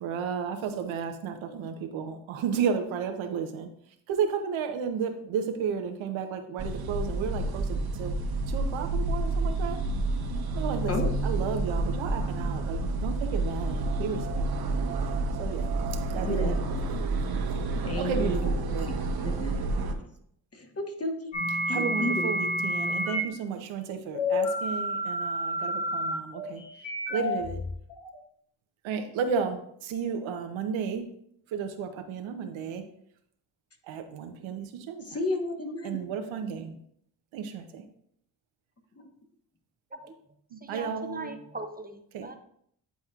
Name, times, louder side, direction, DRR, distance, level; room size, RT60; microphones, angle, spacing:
voice 1, 0.0-3.7 4.1-7.7 8.0-8.2 8.5-9.8 10.5-10.9 11.2-14.7 15.4-15.7 16.1-16.5 18.0-18.4 18.7-18.9 21.7-26.6 27.1-27.6 28.8-31.1 31.5-32.8 33.9-35.0 35.8-36.7 37.3-37.8 40.5-41.3 42.1-42.3, right 6 dB, 85° right, 5 dB, 0.8 m, -33 dB
sound 1, 6.6-19.9, right 2 dB, 50° right, 0.9 m, -29 dB
voice 2, 15.9-16.9 17.7-19.6 19.9-20.1 20.5-21.3 21.7-22.3 35.0-36.0 39.0-39.1, left 2 dB, 30° left, 4 dB, 1.2 m, -33 dB
sound 2, 21.3-23.2 24.1-28.2, left 1 dB, 70° left, 1.8 m, -29 dB
voice 3, 40.6-42.4, right 2 dB, 20° right, 7 dB, 0.6 m, -40 dB
9.4 x 4.2 x 2.4 m, 0.68 s
supercardioid pair, 60°, 46 cm